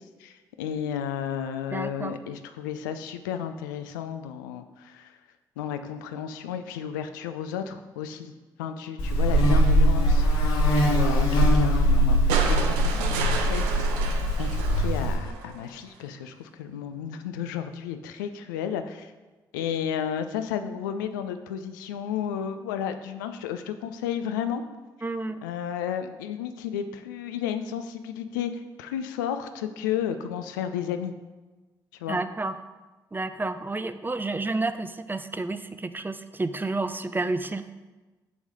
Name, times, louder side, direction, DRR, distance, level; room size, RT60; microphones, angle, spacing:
voice 1, 0.6-5.1 5.6-8.3 8.6-19.1 19.5-24.6 25.4-31.1 32.0-32.2, left 8 dB, 90° left, 9 dB, 0.4 m, -33 dB
voice 2, 1.7-2.1 25.0-25.4 32.1-32.6 33.1-37.6, right 2 dB, 20° right, 11 dB, 0.5 m, -30 dB
Buzz, 9.0-15.1, equal, 75° left, 1.5 m, -21 dB
sound 1, 12.3-15.6 16.9-17.0, right 5 dB, 85° right, 0.5 m, -32 dB
7.1 x 3.1 x 5.5 m, 1.2 s
hypercardioid pair, 45°, 10 cm